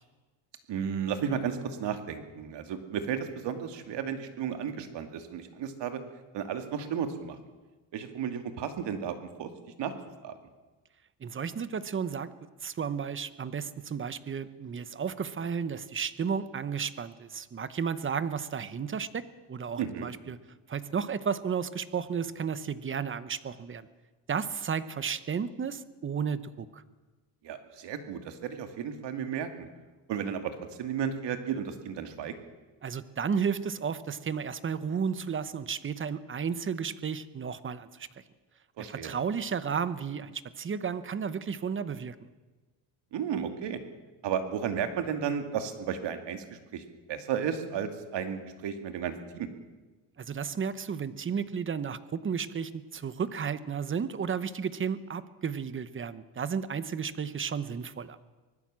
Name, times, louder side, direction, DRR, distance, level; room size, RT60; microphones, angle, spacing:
voice 1, 0.7-6.0 6.3-7.4 7.9-9.5 9.8-9.9 10.2-10.4 19.8-20.1 27.4-29.7 30.1-32.3 38.8-39.1 43.1-43.8 44.2-49.5, right 8 dB, 60° right, 7 dB, 2.4 m, -33 dB
voice 2, 11.2-12.3 12.6-20.4 20.7-23.9 24.3-26.8 32.8-38.1 38.8-42.1 50.2-58.2, right 6 dB, 25° right, 14 dB, 0.9 m, -33 dB
24.5 x 19.0 x 7.6 m, 1.2 s
cardioid pair, 145°, 47 cm